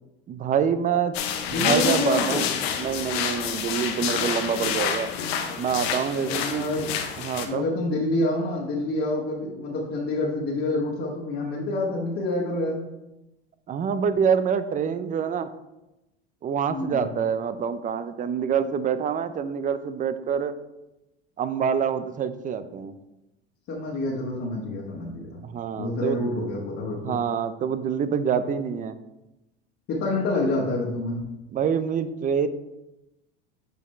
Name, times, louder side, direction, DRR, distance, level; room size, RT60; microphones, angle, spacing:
voice 1, 0.3-1.1 1.5-2.5 2.8-5.1 5.6-6.7 7.2-7.7 13.7-15.5 16.4-20.5 21.4-23.0 25.4-26.3 27.0-29.0 31.5-32.5, right 7 dB, 25° right, 12 dB, 0.5 m, -26 dB
sound 1, 1.1-7.5, left 8 dB, 75° left, 0.9 m, -28 dB
voice 2, 1.5-2.5 6.1-6.9 7.4-12.8 16.7-17.1 23.7-25.4 25.8-27.2 29.9-31.2, left 2 dB, 45° left, -5 dB, 1.6 m, -27 dB
7.6 x 5.0 x 3.2 m, 0.95 s
hypercardioid pair, 95°, 32 cm